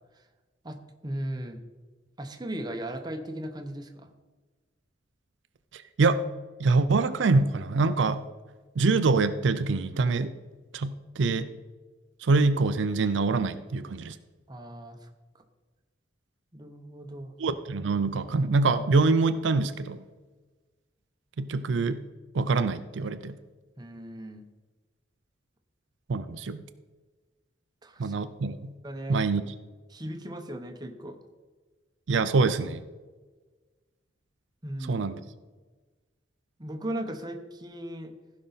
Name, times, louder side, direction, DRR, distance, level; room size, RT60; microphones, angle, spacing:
voice 1, 1.0-1.6 2.2-4.1 14.5-15.1 16.5-17.3 23.8-24.5 27.8-28.1 28.8-29.2 29.9-31.2 34.6-35.1 36.6-38.1, right 1 dB, 20° right, 4 dB, 0.9 m, -37 dB
voice 2, 5.7-6.2 6.6-8.2 8.8-10.3 10.7-11.5 12.2-14.2 17.4-20.0 21.4-22.0 22.3-23.4 26.1-26.6 28.0-28.6 29.1-29.4 32.1-32.8 34.9-35.1, right 3 dB, 80° right, 11 dB, 0.5 m, -25 dB
15.5 x 5.4 x 4.0 m, 1.3 s
head